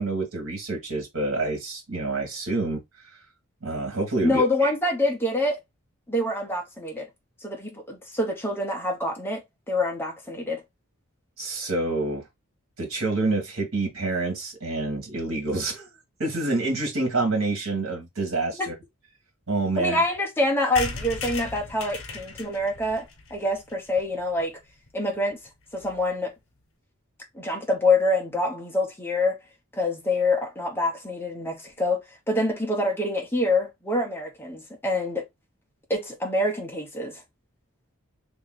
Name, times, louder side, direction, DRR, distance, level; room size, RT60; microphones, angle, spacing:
voice 1, 0.0-2.8 3.1-3.2 3.6-4.7 11.4-12.2 12.8-15.9 16.2-18.7 19.5-20.0, right 2 dB, 70° right, 1.8 m, -27 dB
voice 2, 4.2-5.6 6.1-7.1 7.4-9.4 9.7-10.6 18.6-18.7 19.8-24.5 24.9-25.4 25.7-26.3 27.3-29.4 29.7-32.0 32.3-35.2 35.9-37.2, left 2 dB, 10° left, 0.9 m, -26 dB
sound 1, 20.8-24.4 24.9-25.0 25.2-25.3 25.5-25.6 25.8-26.0, left 4 dB, 70° left, 1.0 m, -36 dB
3.1 x 2.7 x 3.8 m
head